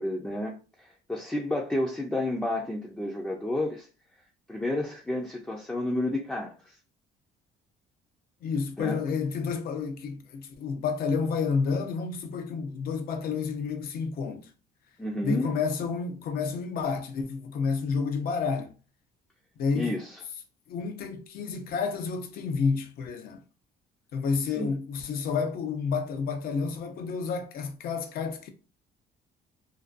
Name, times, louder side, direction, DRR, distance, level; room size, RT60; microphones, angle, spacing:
voice 1, 0.0-3.9 4.5-6.7 8.8-9.0 15.0-15.5 19.7-20.2 24.6-24.7, left 1 dB, 5° left, 0.4 m, -31 dB
voice 2, 8.4-14.5 15.2-18.8 19.6-19.9 20.7-23.4 24.1-28.5, left 5 dB, 65° left, 0.5 m, -30 dB
2.5 x 2.2 x 2.4 m
cardioid pair, 110°, 17 cm